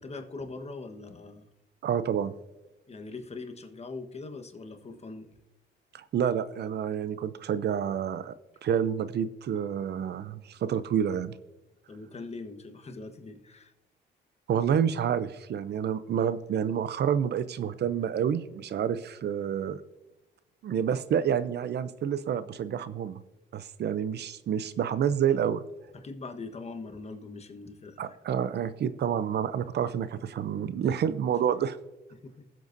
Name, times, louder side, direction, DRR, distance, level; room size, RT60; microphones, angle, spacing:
voice 1, 0.0-1.5 2.9-5.3 11.9-13.7 25.9-28.2 32.1-32.5, left 3 dB, 30° left, 6 dB, 1.3 m, -42 dB
voice 2, 1.8-2.3 5.9-8.3 8.6-11.4 14.5-19.8 20.6-23.2 23.5-25.6 28.0-31.8, right 8 dB, 60° right, 14 dB, 0.6 m, -28 dB
19.5 x 7.7 x 2.6 m, 1.0 s
cardioid pair, 90°, 20 cm